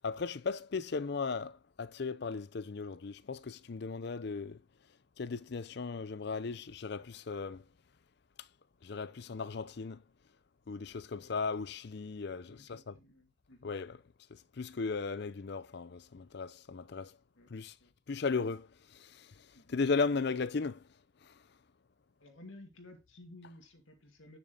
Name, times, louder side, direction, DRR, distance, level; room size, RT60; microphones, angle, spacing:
voice 1, 0.0-4.6 5.2-7.6 8.8-10.0 10.7-12.9 13.6-14.0 14.3-17.1 17.5-17.7 18.1-20.8 21.2-21.3, left 4 dB, 55° left, 0.5 m, -36 dB
voice 2, 12.5-13.7 17.4-17.9 19.5-19.7 22.2-24.4, left 1 dB, 80° left, 2.2 m, -55 dB
8.8 x 7.2 x 3.9 m
head